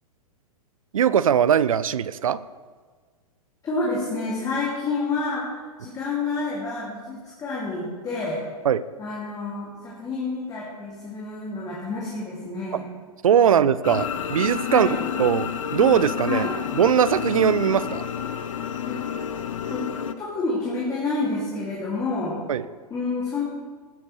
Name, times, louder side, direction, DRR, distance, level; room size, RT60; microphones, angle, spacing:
voice 1, 0.9-2.4 8.7-8.8 13.2-14.9 15.2-16.5 16.7-18.1 22.5-22.7, right 8 dB, 60° right, 17 dB, 0.5 m, -20 dB
voice 2, 3.6-5.5 5.8-8.4 9.0-12.9 13.4-13.5 14.7-15.1 16.3-16.5 18.9-19.0 19.7-19.9 20.2-22.4 22.9-23.4, left 3 dB, 15° left, -5 dB, 2.3 m, -29 dB
sound 1, 13.8-20.1, left 9 dB, 55° left, 0.8 m, -29 dB
19.5 x 10.5 x 3.2 m, 1.5 s
figure-of-eight pair, 105°, 19 cm